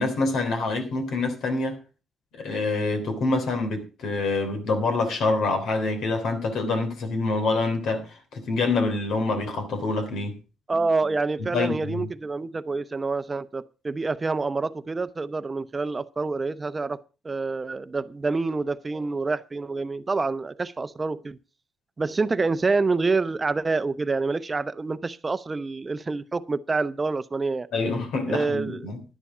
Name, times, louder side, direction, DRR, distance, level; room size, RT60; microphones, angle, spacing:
voice 1, 0.0-1.8 2.3-10.4 11.4-12.1 27.7-29.0, left 3 dB, 75° left, 3.4 m, -26 dB
voice 2, 10.7-17.0 17.2-21.4 22.0-27.7 28.3-28.9, right 3 dB, 25° right, 0.8 m, -27 dB
11.0 x 10.0 x 4.9 m
cardioid pair, 90°, 0 cm